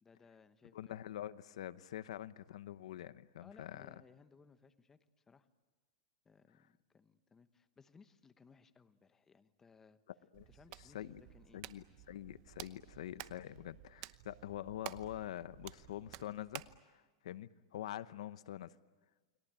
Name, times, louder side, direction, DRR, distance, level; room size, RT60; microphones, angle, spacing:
voice 1, 0.0-1.1 3.4-5.5 6.2-10.0 10.5-11.6, left 5 dB, 15° left, 11 dB, 1.0 m, -63 dB
voice 2, 0.7-3.9 10.3-10.5 10.9-11.2 11.5-16.6 16.9-18.7, left 12 dB, 75° left, 15 dB, 0.8 m, -45 dB
Hands, 10.3-16.8, right 18 dB, 45° right, 0.9 m, -52 dB
29.5 x 22.5 x 9.0 m, 1.3 s
supercardioid pair, 155°, 3 cm